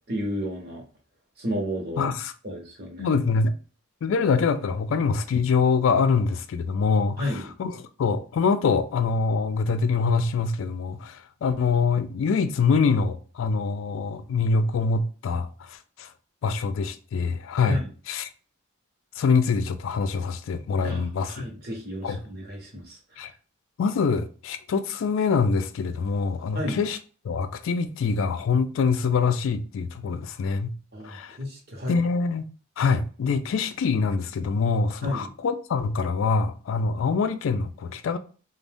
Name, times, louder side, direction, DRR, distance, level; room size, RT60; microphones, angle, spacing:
voice 1, 0.1-0.8 1.4-2.1 2.4-3.1 7.2-7.5 17.6-17.9 20.8-23.3 26.5-26.8 30.9-32.1 35.0-35.3, left 1 dB, 50° right, 0.8 m, -32 dB
voice 2, 2.0-2.3 3.0-3.5 4.0-7.2 7.6-16.1 16.4-17.8 18.1-18.3 19.2-21.5 22.0-22.2 23.2-23.3 23.8-27.0 27.2-30.7 31.0-31.4 31.9-32.4 32.8-38.2, left 5 dB, 70° left, 0.3 m, -24 dB
2.5 x 2.1 x 3.3 m
head